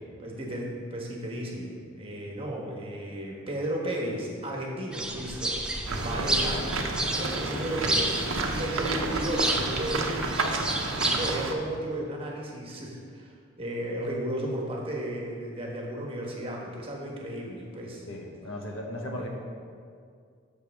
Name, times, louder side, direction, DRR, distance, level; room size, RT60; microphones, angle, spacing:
voice 1, 0.2-6.6 7.1-10.6 11.1-18.1 19.2-19.3, right 1 dB, 30° right, -1 dB, 1.3 m, -34 dB
sound 1, 4.9-11.4, right 1 dB, 5° right, 0.6 m, -31 dB
sound 2, 5.9-11.5, right 3 dB, 85° right, 0.8 m, -31 dB
voice 2, 18.1-19.3, left 1 dB, 80° left, 0 dB, 1.3 m, -37 dB
13.5 x 6.0 x 3.5 m, 2.2 s
head